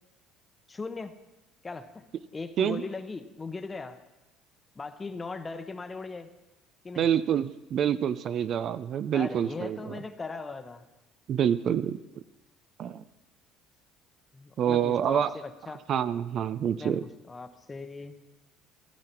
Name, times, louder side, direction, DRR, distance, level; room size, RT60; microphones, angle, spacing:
voice 1, 0.7-1.1 1.6-2.0 2.3-4.0 4.7-6.3 6.8-7.1 9.1-10.9 14.3-15.8 16.8-18.2, left 3 dB, 20° left, 9 dB, 0.9 m, -39 dB
voice 2, 7.0-10.0 11.3-12.0 12.8-13.0 14.6-15.3 15.9-17.0, right 9 dB, 50° right, 14 dB, 0.5 m, -27 dB
15.5 x 9.7 x 4.5 m, 1.0 s
cardioid pair, 115°, 0 cm